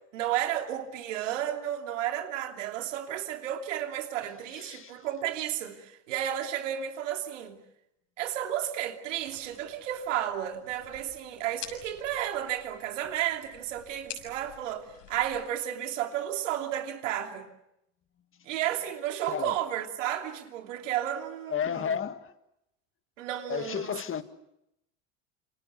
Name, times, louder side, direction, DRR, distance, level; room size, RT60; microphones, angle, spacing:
voice 1, 0.1-7.6 8.2-17.5 18.5-21.9 23.2-24.0, right 11 dB, 85° right, 2.9 m, -32 dB
voice 2, 4.5-5.0 19.3-19.6 21.5-22.3 23.5-24.2, left 8 dB, 35° left, 1.9 m, -32 dB
sound 1, 9.1-15.4, left 9 dB, 65° left, 6.8 m, -49 dB
27.5 x 26.0 x 7.2 m
hypercardioid pair, 85°, 36 cm